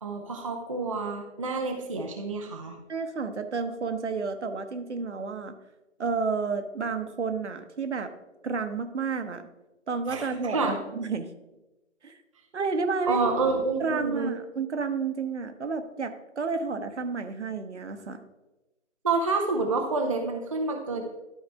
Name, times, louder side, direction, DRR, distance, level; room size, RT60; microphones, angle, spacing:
voice 1, 0.0-2.8 10.1-10.8 13.0-14.3 19.0-21.0, right 3 dB, 25° right, 2 dB, 0.5 m, -28 dB
voice 2, 2.9-5.6 6.0-8.1 8.4-9.4 9.9-11.3 12.0-12.2 12.5-13.3 13.8-18.2, right 4 dB, 65° right, 8 dB, 1.0 m, -31 dB
12.0 x 4.8 x 3.4 m, 1.0 s
figure-of-eight pair, 140°, 38 cm